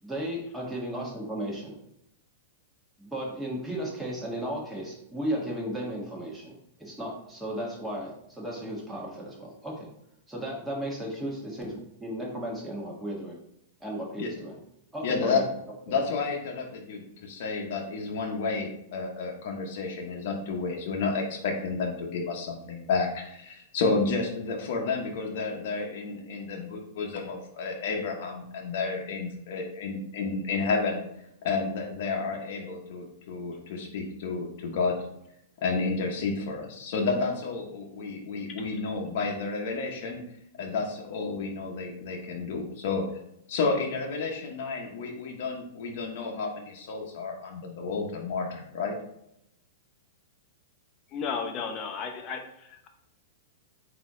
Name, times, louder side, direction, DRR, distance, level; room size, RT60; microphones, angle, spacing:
voice 1, 0.0-1.7 3.0-9.7 10.3-13.4 13.8-14.6 14.9-15.4, right 1 dB, 5° right, -4 dB, 1.5 m, -35 dB
voice 2, 15.0-15.4 15.9-31.0 31.4-34.9 35.6-40.2 40.6-43.0 43.5-48.9, left 4 dB, 65° left, 1 dB, 0.9 m, -31 dB
voice 3, 51.1-52.9, left 5 dB, 35° left, 4 dB, 0.8 m, -34 dB
4.0 x 2.9 x 3.7 m, 0.78 s
hypercardioid pair, 120°, 0 cm